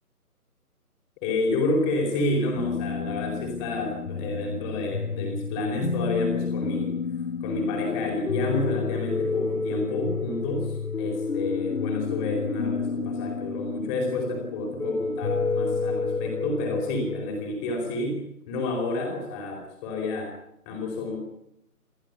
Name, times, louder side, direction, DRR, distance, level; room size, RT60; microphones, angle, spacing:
voice 1, 1.2-6.9 7.4-20.3 20.7-21.2, left 2 dB, 15° left, 1 dB, 4.6 m, -29 dB
sound 1, 2.6-17.5, left 5 dB, 70° left, 1.7 m, -30 dB
25.0 x 15.5 x 9.7 m, 0.78 s
figure-of-eight pair, 155°, 45 cm